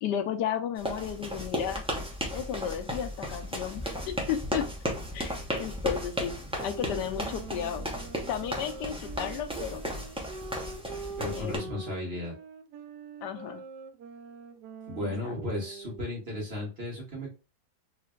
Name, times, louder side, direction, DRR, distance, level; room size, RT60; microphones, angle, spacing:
voice 1, 0.0-1.8 2.3-4.7 5.1-6.4 6.6-7.9 8.3-9.8 11.3-11.7 13.2-13.6 15.2-15.3, left 9 dB, 85° left, 8 dB, 1.3 m, -33 dB
sound 1, 0.8-11.6, equal, 5° right, 0.7 m, -35 dB
sound 2, 6.5-16.2, right 4 dB, 80° right, 1.2 m, -44 dB
voice 2, 11.2-12.4 14.9-17.3, left 1 dB, 35° right, -3 dB, 1.9 m, -35 dB
4.0 x 3.2 x 2.4 m, 0.31 s
omnidirectional pair, 1.8 m